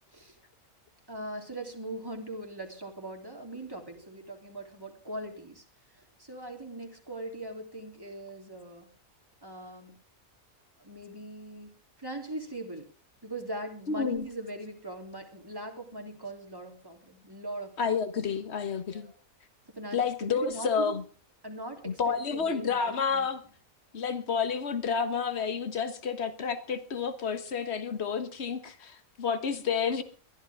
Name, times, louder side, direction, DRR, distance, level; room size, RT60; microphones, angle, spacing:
voice 1, 1.1-5.6 6.2-8.9 9.4-9.9 10.8-11.7 12.0-12.9 13.2-18.0 18.9-19.1 19.7-21.0 21.4-23.3, right 1 dB, 15° right, 3.3 m, -40 dB
voice 2, 13.9-14.3 17.8-19.1 19.9-21.0 21.8-23.4 23.9-30.0, left 6 dB, 50° left, 1.7 m, -30 dB
22.0 x 13.5 x 3.7 m
omnidirectional pair, 1.4 m